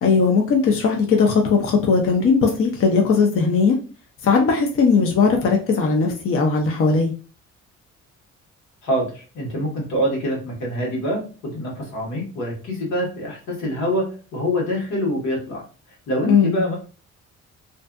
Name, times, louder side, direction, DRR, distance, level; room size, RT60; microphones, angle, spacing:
voice 1, 0.0-3.8 4.2-7.1 16.3-16.6, left 5 dB, 45° left, 1 dB, 0.6 m, -18 dB
voice 2, 8.8-15.6 16.1-16.8, equal, 90° left, -2 dB, 1.2 m, -25 dB
2.5 x 2.4 x 2.2 m, 0.37 s
cardioid pair, 90°, 30 cm